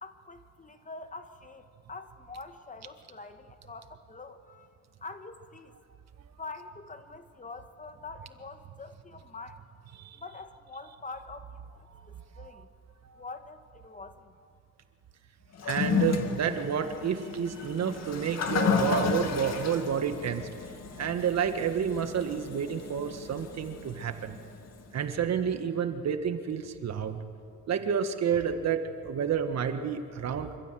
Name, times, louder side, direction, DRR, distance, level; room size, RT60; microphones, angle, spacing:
voice 1, 0.0-4.7 5.0-5.7 6.4-9.6 10.1-12.7 13.2-14.3, left 3 dB, 25° left, 8 dB, 1.5 m, -45 dB
Toilet flush, 15.5-24.8, left 6 dB, 60° left, 2.1 m, -33 dB
voice 2, 15.6-20.5 21.0-24.4 24.9-27.2 27.7-30.5, right 7 dB, 60° right, 8 dB, 1.6 m, -30 dB
26.0 x 15.0 x 7.7 m, 2.3 s
cardioid pair, 90°, 30 cm